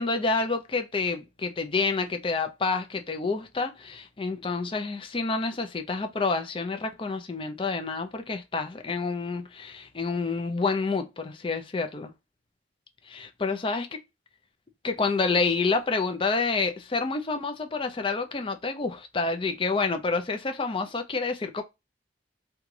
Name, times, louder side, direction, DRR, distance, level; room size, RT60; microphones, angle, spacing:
voice 1, 0.0-12.1 13.1-13.9 14.8-21.6, left 4 dB, 30° left, 0.5 m, -28 dB
3.2 x 2.3 x 3.7 m
head